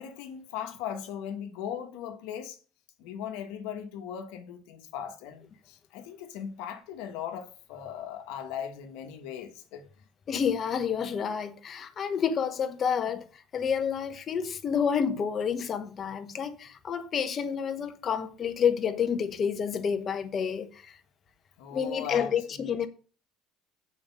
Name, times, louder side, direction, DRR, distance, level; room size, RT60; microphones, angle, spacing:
voice 1, 0.0-2.6 3.0-9.9 21.6-22.3 22.6-22.9, left 8 dB, 75° left, 1.3 m, -38 dB
voice 2, 10.3-21.0 21.7-22.9, left 7 dB, 40° left, 1.0 m, -29 dB
7.0 x 5.2 x 5.5 m
supercardioid pair, 100°, 0 cm